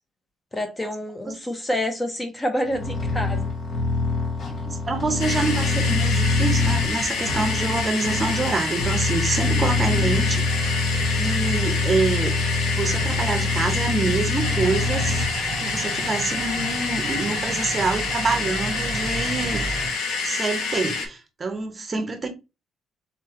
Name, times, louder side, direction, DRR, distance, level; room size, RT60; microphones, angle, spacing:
voice 1, 0.5-3.5, left 1 dB, 15° left, 0.6 m, -28 dB
sound 1, 2.7-15.3, left 2 dB, 40° left, 0.9 m, -25 dB
voice 2, 4.5-10.5 11.1-12.3 12.8-15.3 15.6-19.6 20.2-22.3, right 3 dB, 20° right, 0.8 m, -26 dB
sound 2, 5.2-21.1, left 4 dB, 85° left, 1.2 m, -28 dB
sound 3, 14.4-19.9, right 4 dB, 65° right, 0.7 m, -33 dB
3.9 x 3.0 x 3.6 m
cardioid pair, 165°, 0 cm